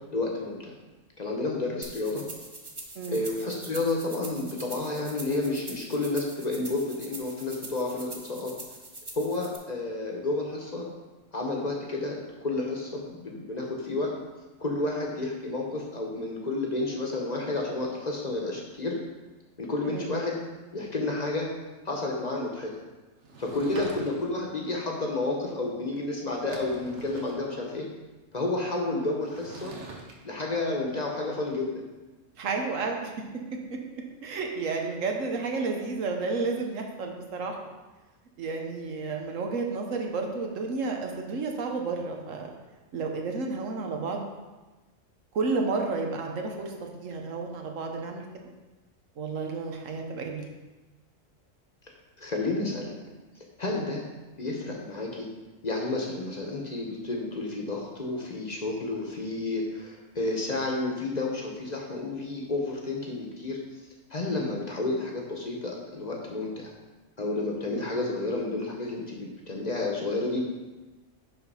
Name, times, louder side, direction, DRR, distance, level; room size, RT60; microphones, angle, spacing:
voice 1, 0.1-0.7 1.2-2.2 3.1-8.5 9.1-10.9 11.3-14.1 14.6-19.0 19.6-20.4 20.7-21.5 21.8-22.7 23.4-27.9 28.3-29.7 30.2-31.8 52.2-52.9 53.6-54.0 54.4-55.3 55.6-63.6 64.1-66.7 67.2-70.4, left 2 dB, 35° left, -1 dB, 0.9 m, -31 dB
sound 1, 1.8-9.6, right 2 dB, 25° right, 0.6 m, -43 dB
Sliding door / Wood, 23.2-24.5 26.0-26.1 26.3-27.4 29.2-30.1, right 3 dB, 65° right, 1.2 m, -44 dB
voice 2, 32.3-33.1 33.9-37.6 38.4-42.5 42.9-44.3 45.3-48.2 49.2-50.4 53.7-53.9, right 4 dB, 80° right, 2 dB, 1.3 m, -31 dB
5.6 x 4.5 x 5.4 m, 1.2 s
omnidirectional pair, 1.3 m